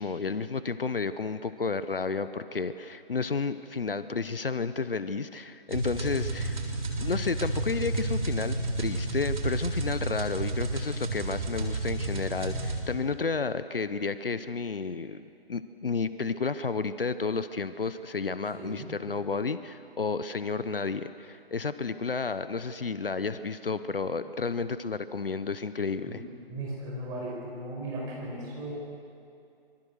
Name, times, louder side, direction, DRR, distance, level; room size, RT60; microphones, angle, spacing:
voice 1, 0.0-6.6 7.0-26.2, left 4 dB, 65° left, 13 dB, 1.0 m, -31 dB
sound 1, 5.7-12.8, right 2 dB, 50° right, 4.0 m, -31 dB
voice 2, 18.5-18.9 26.0-26.2 26.5-28.7, right 1 dB, 10° right, -4 dB, 5.1 m, -37 dB
26.5 x 22.5 x 6.5 m, 2.5 s
figure-of-eight pair, 145°, 30 cm